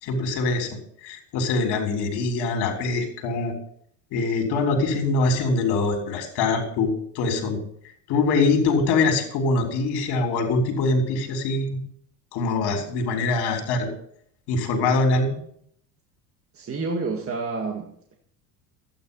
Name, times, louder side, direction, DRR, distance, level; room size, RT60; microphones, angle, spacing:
voice 1, 0.0-0.7 1.0-3.5 4.1-7.6 8.1-11.8 12.3-13.9 14.5-15.4, left 3 dB, 55° left, 4 dB, 3.6 m, -23 dB
voice 2, 16.5-18.1, right 3 dB, 30° right, 1 dB, 1.9 m, -29 dB
12.0 x 9.4 x 5.4 m, 0.64 s
hypercardioid pair, 80°, 48 cm